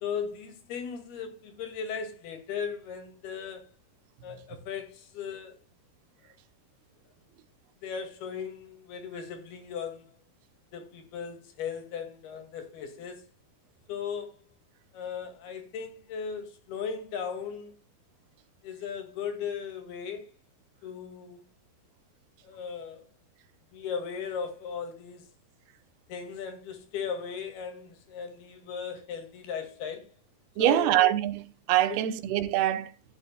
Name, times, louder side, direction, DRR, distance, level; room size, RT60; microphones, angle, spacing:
voice 1, 0.0-3.7 4.2-5.6 7.8-10.2 10.7-13.3 13.9-14.4 14.9-17.7 18.6-20.3 20.8-21.5 22.4-23.0 23.7-25.3 26.1-30.1 30.6-31.0 31.9-32.2, left 6 dB, 80° left, 4.0 m, -37 dB
voice 2, 30.6-31.4 31.7-32.9, right 13 dB, 85° right, 2.9 m, -24 dB
15.0 x 11.0 x 2.2 m
omnidirectional pair, 4.4 m